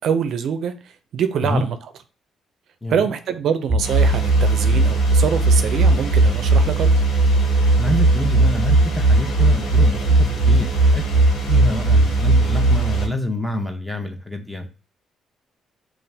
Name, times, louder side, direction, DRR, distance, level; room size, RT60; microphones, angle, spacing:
voice 1, 0.0-1.8 2.9-6.9, right 7 dB, 70° right, 0.4 m, -24 dB
sound 1, 3.7-12.8, right 1 dB, 25° right, 0.6 m, -18 dB
sound 2, 3.8-13.1, right 6 dB, 80° left, 1.4 m, -24 dB
voice 2, 7.8-14.7, left 1 dB, 5° left, 0.8 m, -26 dB
4.0 x 2.4 x 3.4 m
cardioid pair, 90°, 0 cm